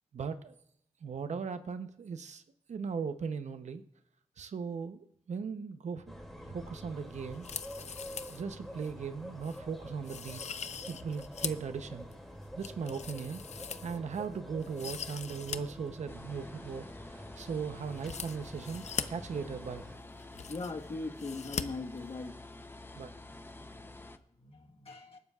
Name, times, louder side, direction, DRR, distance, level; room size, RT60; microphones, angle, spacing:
voice 1, 0.1-0.5 1.0-2.4 2.7-3.8 4.4-6.2 6.5-7.5 8.3-10.4 10.9-12.1 12.6-13.4 13.8-19.8 22.9-23.1, right 6 dB, 80° right, 10 dB, 0.8 m, -38 dB
sound 1, 6.1-20.0, equal, ahead, 2.5 m, -47 dB
sound 2, 7.3-8.4 8.8-8.9 9.4-9.6 10.0-11.7 12.1-14.2 14.6-15.6 15.9-16.0 17.9-19.0 19.9-20.0 20.1-20.9 21.2-21.6 21.9-22.0, left 7 dB, 70° left, 0.6 m, -41 dB
sound 3, 16.1-24.2, left 2 dB, 20° left, 0.7 m, -49 dB
voice 2, 20.5-22.3 24.4-25.2, left 3 dB, 55° left, 3 dB, 1.4 m, -40 dB
27.0 x 12.0 x 2.4 m, 0.74 s
wide cardioid pair, 95°, 12 cm